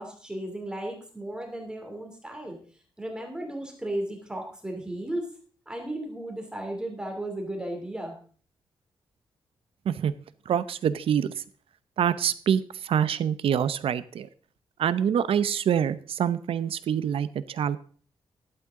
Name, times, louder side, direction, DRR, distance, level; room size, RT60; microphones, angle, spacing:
voice 1, 0.0-2.6 3.0-5.2 5.7-8.2, right 1 dB, 10° right, 2 dB, 2.9 m, -35 dB
voice 2, 10.5-11.3 12.0-14.3 14.8-17.8, right 8 dB, 75° right, 15 dB, 0.7 m, -25 dB
12.0 x 11.5 x 3.7 m, 0.43 s
wide cardioid pair, 150°, 10 cm